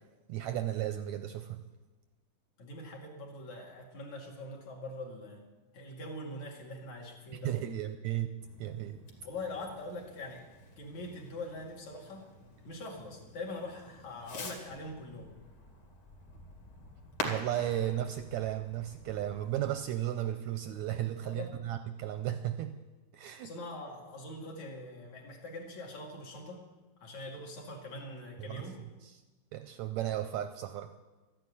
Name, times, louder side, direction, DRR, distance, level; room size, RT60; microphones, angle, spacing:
voice 1, 0.3-1.6 7.4-8.3 8.6-9.0 17.2-22.8 23.1-23.5 28.4-28.6 29.0-29.1 29.5-30.9, right 12 dB, 80° right, 9 dB, 1.7 m, -34 dB
voice 2, 2.6-5.5 5.7-7.7 9.2-10.5 10.8-12.3 12.6-15.3 21.3-21.5 23.4-26.7 27.0-28.8, left 2 dB, 60° left, 0 dB, 3.5 m, -43 dB
Fireworks, 8.4-19.8, left 2 dB, 40° left, 2.8 m, -47 dB
13.5 x 10.0 x 9.8 m, 1.2 s
omnidirectional pair, 3.8 m